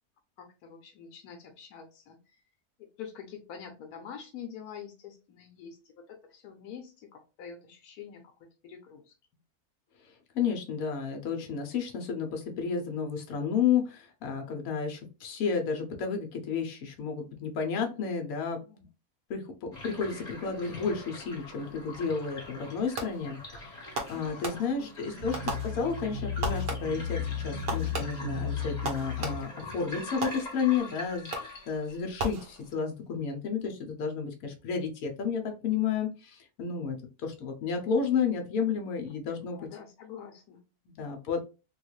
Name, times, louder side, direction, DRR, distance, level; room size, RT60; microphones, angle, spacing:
voice 1, 0.4-2.4 2.8-9.1 24.1-25.3 39.5-40.6, left 7 dB, 90° left, 4 dB, 1.2 m, -46 dB
voice 2, 10.3-18.9 19.3-37.0 37.2-39.6 40.9-41.4, left 6 dB, 75° left, 3 dB, 1.1 m, -32 dB
sound 1, 19.7-32.7, left 2 dB, 30° left, 1.1 m, -44 dB
Fireworks, 23.0-23.4 23.9-24.9 25.3-26.1 26.4-27.1 27.7-29.7 30.2-30.8 31.3-31.7 32.2-32.9, right 2 dB, 50° right, 0.8 m, -37 dB
sound 2, 25.2-29.4, left 6 dB, 80° right, 1.1 m, -34 dB
3.4 x 2.3 x 3.0 m, 0.30 s
omnidirectional pair, 1.6 m